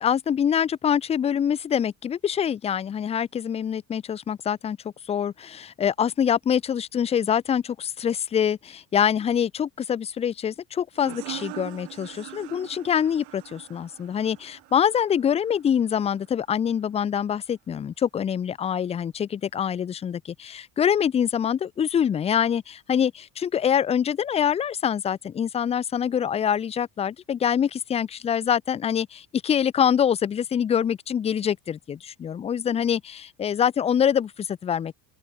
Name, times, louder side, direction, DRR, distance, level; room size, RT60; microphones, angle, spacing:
voice 1, 0.0-34.9, left 8 dB, 15° left, 0.3 m, -25 dB
sound 1, 10.9-16.3, right 22 dB, 65° right, 4.4 m, -42 dB
open air
cardioid pair, 175°, 44 cm